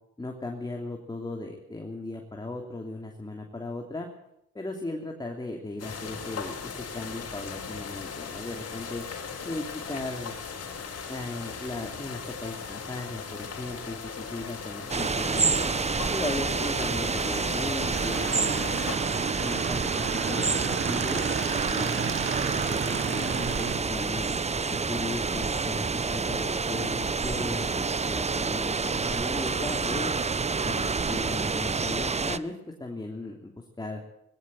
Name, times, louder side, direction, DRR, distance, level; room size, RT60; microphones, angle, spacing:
voice 1, 0.2-4.1 4.5-9.0 9.4-10.4 11.1-14.0 14.3-15.7 16.1-18.8 19.4-22.1 22.5-24.3 24.7-30.1 30.6-34.0, left 2 dB, 15° left, 1 dB, 3.0 m, -37 dB
sound 1, 5.8-19.0, left 6 dB, 55° left, 4.6 m, -38 dB
sound 2, 14.9-32.4, right 4 dB, 20° right, 0.8 m, -28 dB
Motorcycle / Engine, 17.9-23.8, right 6 dB, 40° right, 1.4 m, -33 dB
19.5 x 17.0 x 7.7 m, 0.80 s
cardioid pair, 90°, 30 cm